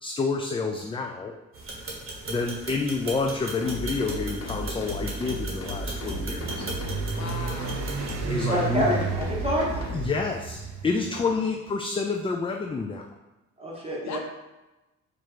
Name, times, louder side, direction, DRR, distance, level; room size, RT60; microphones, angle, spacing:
voice 1, 0.0-1.3 2.3-6.6 8.3-8.9 9.9-13.1, left 4 dB, 20° left, 2 dB, 0.3 m, -29 dB
sound 1, 1.5-8.2, right 2 dB, 45° right, 1.3 m, -38 dB
sound 2, 3.6-10.0, equal, 50° left, 1.0 m, -35 dB
sound 3, 5.9-11.3, right 5 dB, 60° right, 0.6 m, -33 dB
voice 2, 7.1-8.0 11.1-11.5 14.0-14.2, left 6 dB, 70° left, 4 dB, 0.7 m, -39 dB
voice 3, 8.2-9.7 13.6-14.2, equal, 20° right, -4 dB, 1.6 m, -27 dB
4.3 x 2.6 x 4.8 m, 1.0 s
cardioid pair, 90°, 30 cm